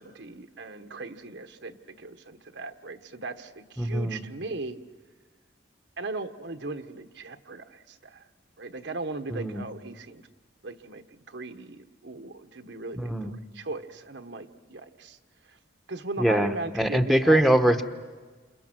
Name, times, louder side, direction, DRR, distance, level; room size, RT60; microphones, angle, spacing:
voice 1, 0.0-4.8 6.0-8.2 8.6-10.2 10.6-15.2 15.5-15.6 15.9-17.6, right 3 dB, 70° right, 8 dB, 1.2 m, -38 dB
voice 2, 3.8-4.2 9.3-9.6 13.0-13.3 16.2-16.5 16.7-17.8, right 1 dB, ahead, 7 dB, 1.0 m, -22 dB
29.0 x 28.0 x 6.1 m, 1.4 s
head